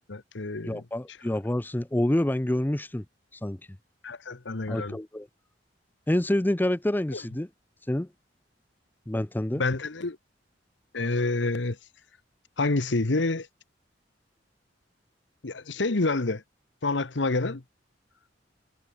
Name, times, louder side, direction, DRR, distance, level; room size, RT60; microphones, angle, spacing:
voice 1, 0.0-0.8 4.0-5.0 9.5-10.2 10.9-11.8 12.6-13.5 15.4-16.4 16.8-17.6, left 3 dB, 75° left, 1.2 m, -28 dB
voice 2, 0.6-3.0 3.4-3.6 4.7-5.3 6.1-7.5 7.9-8.1 9.1-9.6, left 1 dB, 10° left, 0.6 m, -27 dB
head